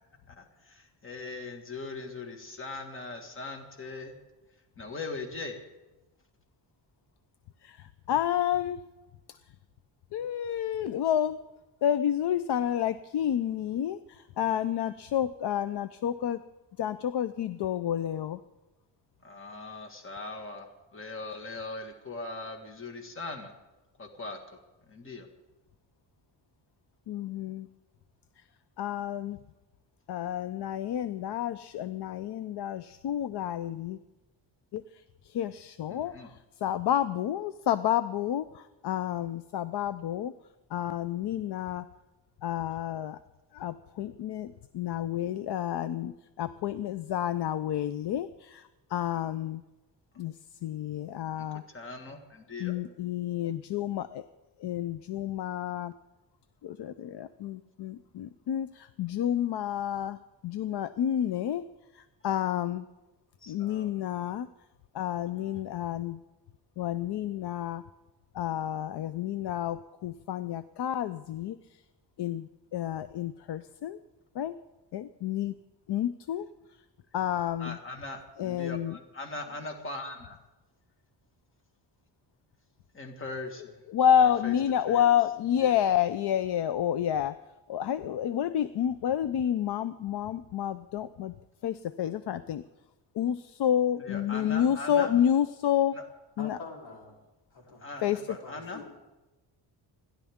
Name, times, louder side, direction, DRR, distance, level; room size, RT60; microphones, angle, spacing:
voice 1, 0.3-4.2 4.8-5.6 19.2-23.5 24.0-24.6 24.9-25.3 35.9-36.3 45.6-45.7 51.5-52.8 63.4-63.9 65.3-65.6 77.6-80.4 82.9-83.7 84.2-84.5 84.9-85.1 85.6-85.8 94.0-95.2 95.9-96.1 97.8-98.8, left 3 dB, 25° left, 3 dB, 1.8 m, -40 dB
voice 2, 8.1-8.8 10.1-11.4 11.8-16.4 16.8-18.4 27.1-27.7 28.8-29.4 30.1-34.0 34.7-34.8 35.3-36.1 36.6-40.3 40.7-41.8 42.4-43.2 43.5-46.1 46.4-48.6 48.9-49.6 50.2-50.3 50.6-51.6 52.6-54.2 54.6-55.9 56.6-60.2 60.4-61.7 62.2-62.8 63.5-64.5 64.9-66.2 66.8-67.8 68.3-71.6 72.2-74.0 74.4-74.5 74.9-75.5 75.9-76.5 77.1-77.8 78.4-78.9 83.9-87.4 87.7-91.3 91.6-92.6 93.2-96.0 96.4-96.6 98.0-98.2, left 10 dB, 60° left, 14 dB, 0.6 m, -29 dB
voice 3, 96.4-97.2 97.5-97.9 98.3-98.9, left 4 dB, 85° left, 0 dB, 3.7 m, -45 dB
29.0 x 11.5 x 3.6 m, 1.1 s
wide cardioid pair, 135°, 45 cm